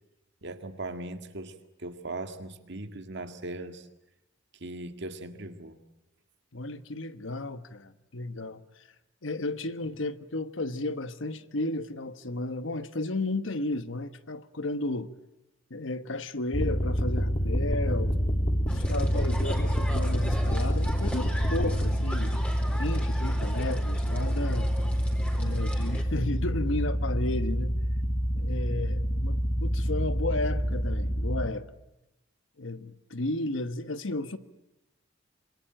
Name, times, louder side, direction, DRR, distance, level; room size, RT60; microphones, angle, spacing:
voice 1, 0.4-3.9 4.6-5.8, right 2 dB, 60° right, 8 dB, 2.0 m, -39 dB
voice 2, 6.5-8.6 9.2-15.1 15.7-18.1 18.7-22.4 22.7-24.7 25.4-27.7 28.3-31.7 32.6-34.4, left 2 dB, 70° left, 12 dB, 1.2 m, -33 dB
sound 1, 16.5-31.5, equal, 30° left, 1.8 m, -27 dB
sound 2, 18.7-26.0, equal, 5° left, 4.2 m, -40 dB
26.5 x 23.0 x 9.0 m, 0.92 s
head